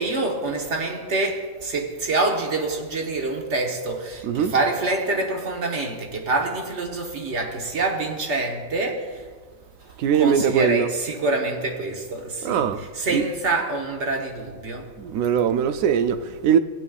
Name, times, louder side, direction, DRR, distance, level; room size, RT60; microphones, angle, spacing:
voice 1, 0.0-9.3 9.8-14.9, right 2 dB, 60° right, 1.5 m, -26 dB
voice 2, 4.2-4.6 10.0-10.9 12.4-12.8 13.1-13.2 15.0-16.6, right 8 dB, 85° right, 1.0 m, -21 dB
18.0 x 7.9 x 2.4 m
omnidirectional pair, 1.4 m